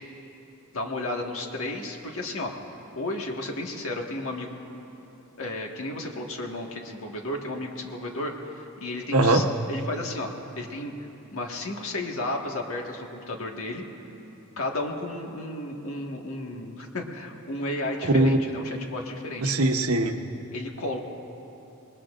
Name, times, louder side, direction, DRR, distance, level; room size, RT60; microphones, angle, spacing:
voice 1, 0.7-2.5 2.9-4.5 5.4-10.3 10.6-10.9 11.3-13.8 14.6-19.5 20.5-21.0, left 2 dB, 65° left, 1 dB, 1.7 m, -33 dB
voice 2, 9.1-9.5 18.1-18.5 19.4-20.2, right 2 dB, 75° right, 5 dB, 1.0 m, -21 dB
26.5 x 20.5 x 2.5 m, 3.0 s
head